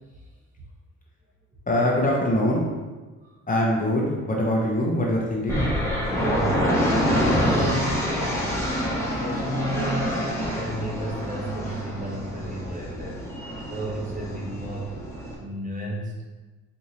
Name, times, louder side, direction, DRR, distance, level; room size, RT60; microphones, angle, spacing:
voice 1, 1.7-2.6 3.5-5.6, left 1 dB, 25° left, -3 dB, 0.8 m, -23 dB
sound 1, 5.5-15.3, equal, 10° left, 1.1 m, -26 dB
voice 2, 6.1-6.6 7.4-8.1 9.2-13.2 13.7-14.9 15.4-16.3, right 1 dB, 25° right, -3 dB, 1.0 m, -32 dB
4.7 x 2.7 x 2.8 m, 1.2 s
cardioid pair, 90°, 30 cm